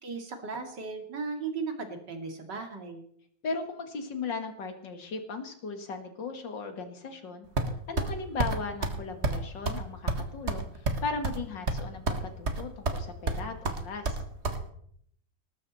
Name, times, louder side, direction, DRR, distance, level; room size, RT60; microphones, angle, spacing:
voice 1, 0.0-3.0, right 4 dB, 65° right, 4 dB, 3.1 m, -36 dB
voice 2, 3.4-7.5 7.9-14.2, left 4 dB, 70° left, 6 dB, 2.8 m, -37 dB
sound 1, 7.6-8.1 8.4-8.6 8.8-9.0 9.2-9.4 9.7-9.8 10.1-11.4 11.7-12.2 12.5-13.0 13.3-14.6, right 3 dB, 35° right, 1.7 m, -29 dB
19.5 x 13.0 x 4.3 m, 0.67 s
omnidirectional pair, 2.1 m